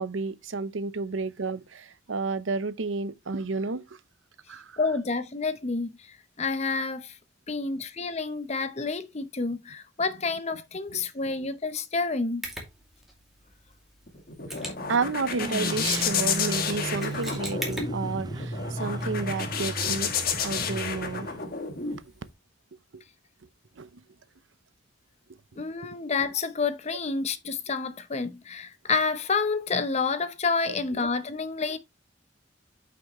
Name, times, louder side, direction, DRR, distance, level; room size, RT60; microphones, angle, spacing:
voice 1, 0.0-3.8 4.5-4.6 10.9-11.1 14.8-20.1 20.4-21.3 23.8-23.9 30.7-30.8, right 4 dB, 85° right, 0.8 m, -31 dB
voice 2, 4.8-7.1 7.5-12.4 25.6-31.8, left 4 dB, 35° left, 0.8 m, -29 dB
Mechanisms, 12.4-22.3, right 1 dB, ahead, 2.3 m, -43 dB
sound 1, 14.1-22.0, left 6 dB, 50° left, 1.4 m, -31 dB
sound 2, 15.4-21.4, right 1 dB, 20° right, 0.5 m, -35 dB
8.3 x 6.0 x 3.0 m
head